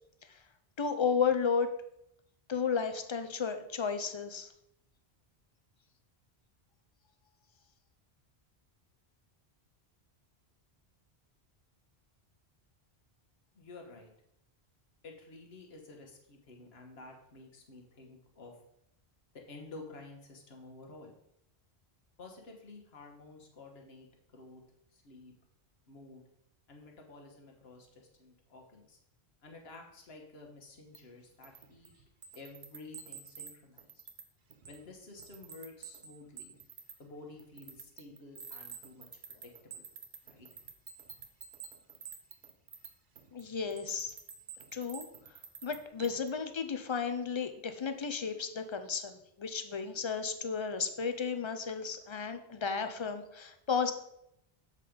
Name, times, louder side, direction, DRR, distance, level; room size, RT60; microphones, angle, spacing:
voice 1, 0.8-1.7 2.5-4.5 43.3-44.1 44.7-45.1 45.6-53.9, left 6 dB, 40° left, 8 dB, 0.5 m, -33 dB
voice 2, 13.5-14.1 15.0-18.6 19.5-21.2 22.2-24.1 24.3-24.6 24.9-25.3 25.9-26.2 26.7-29.0 29.4-32.1 32.3-34.0 34.7-36.6 37.0-39.9 40.2-40.5, left 3 dB, 70° left, 1 dB, 1.4 m, -51 dB
sound 1, 30.9-31.0 31.4-33.5 33.8-34.2 34.5-34.9 35.2-36.9 37.4-42.9 43.2-46.3, right 7 dB, 55° right, 0.8 m, -49 dB
7.4 x 4.1 x 5.0 m, 0.77 s
omnidirectional pair, 1.1 m